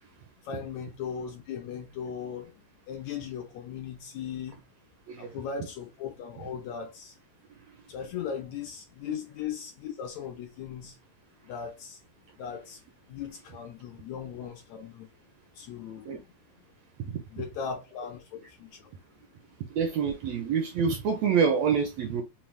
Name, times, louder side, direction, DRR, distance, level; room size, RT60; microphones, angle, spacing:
voice 1, 0.4-2.5 2.9-4.6 5.2-7.1 7.9-11.0 11.4-12.0 12.4-12.8 13.1-15.1 15.6-16.3 17.3-18.9, left 7 dB, 75° left, 1.7 m, -38 dB
voice 2, 19.7-22.2, right 6 dB, 75° right, 1.6 m, -27 dB
5.5 x 2.2 x 3.2 m
omnidirectional pair, 3.7 m